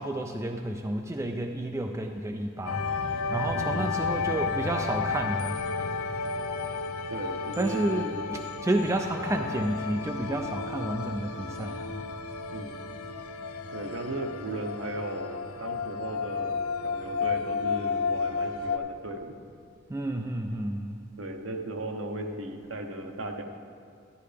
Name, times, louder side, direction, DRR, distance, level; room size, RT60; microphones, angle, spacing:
voice 1, 0.0-5.6 7.6-8.1 8.6-12.0 19.9-21.0, right 1 dB, 15° right, 4 dB, 0.3 m, -30 dB
sound 1, 2.6-18.8, left 5 dB, 85° left, 0.6 m, -32 dB
voice 2, 3.5-3.9 7.1-8.3 12.5-12.8 13.7-19.3 21.2-23.4, right 2 dB, 65° right, 4 dB, 0.9 m, -36 dB
12.0 x 10.5 x 3.4 m, 2.2 s
head